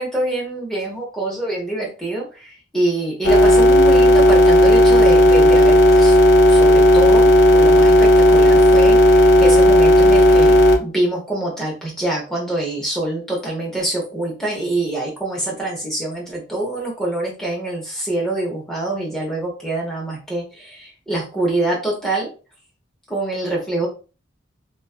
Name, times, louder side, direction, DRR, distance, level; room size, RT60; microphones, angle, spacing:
voice 1, 0.0-6.2 6.5-22.3 23.1-23.9, right 2 dB, 5° left, -4 dB, 0.8 m, -25 dB
sound 1, 3.2-10.8, left 1 dB, 70° left, 0.4 m, -11 dB
2.4 x 2.3 x 2.3 m, 0.34 s
head